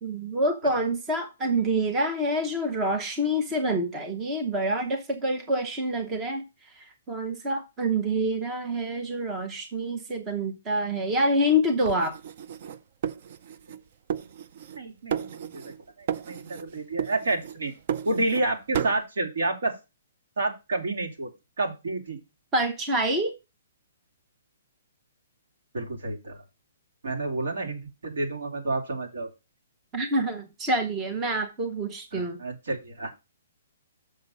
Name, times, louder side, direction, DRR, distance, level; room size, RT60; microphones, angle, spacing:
voice 1, 0.0-6.4 6.8-12.2 22.5-23.3 29.9-32.4, right 1 dB, 15° right, 1.0 m, -27 dB
sound 1, 11.9-13.8 14.1-14.8 15.1-15.8 16.1-16.7 17.0-18.5 18.7-19.0, right 8 dB, 40° right, 0.5 m, -33 dB
voice 2, 14.8-17.7 18.0-19.7 20.4-21.3 21.6-22.2 25.7-26.4 27.0-29.3 32.1-33.1, right 2 dB, 70° right, 3.0 m, -30 dB
6.7 x 6.5 x 5.4 m
hypercardioid pair, 175°, 0 cm